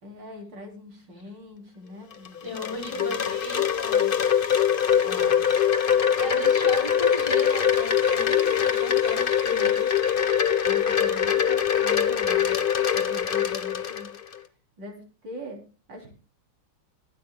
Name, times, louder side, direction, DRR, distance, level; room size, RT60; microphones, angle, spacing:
voice 1, 0.0-3.2 5.0-5.4 10.4-12.6 12.9-14.1 14.8-16.1, left 1 dB, 75° right, 2 dB, 4.2 m, -43 dB
Wind chime, 2.1-14.4, left 8 dB, 35° left, 1.0 m, -23 dB
voice 2, 2.4-4.4 6.1-9.8, left 1 dB, 15° left, 0 dB, 5.4 m, -36 dB
22.5 x 9.3 x 2.3 m, 0.33 s
omnidirectional pair, 2.0 m